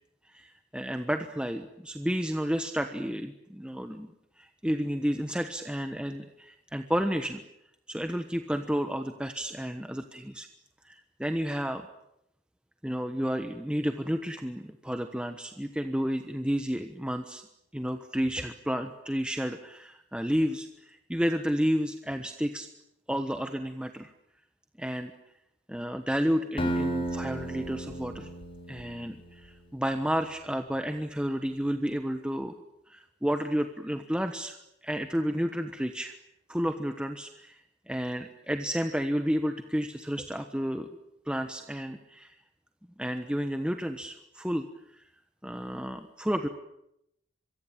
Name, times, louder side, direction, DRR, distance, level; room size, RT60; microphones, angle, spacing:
voice 1, 0.2-7.4 7.9-10.5 10.8-11.9 12.8-17.4 17.7-22.7 23.1-24.1 24.8-25.1 25.7-28.3 28.7-32.6 32.9-34.6 34.8-36.1 36.5-40.9 41.2-42.4 43.0-45.0 45.4-46.5, equal, 5° right, 7 dB, 1.1 m, -31 dB
Acoustic guitar, 26.6-29.6, right 1 dB, 30° left, 6.0 m, -33 dB
25.0 x 23.5 x 8.8 m, 0.82 s
head